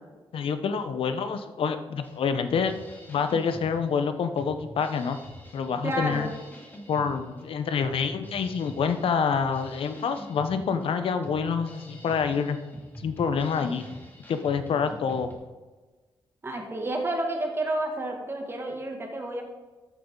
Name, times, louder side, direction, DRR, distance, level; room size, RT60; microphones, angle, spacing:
voice 1, 0.3-2.7 3.1-5.2 5.5-6.3 6.9-12.6 13.0-13.8 14.3-15.3, left 6 dB, 75° left, 9 dB, 0.9 m, -27 dB
Drum kit, 2.0-15.3, equal, 20° left, 2.7 m, -46 dB
voice 2, 5.8-6.3 16.4-19.4, right 1 dB, 25° right, 1 dB, 2.2 m, -30 dB
13.0 x 9.3 x 3.9 m, 1.3 s
cardioid pair, 110°, 9 cm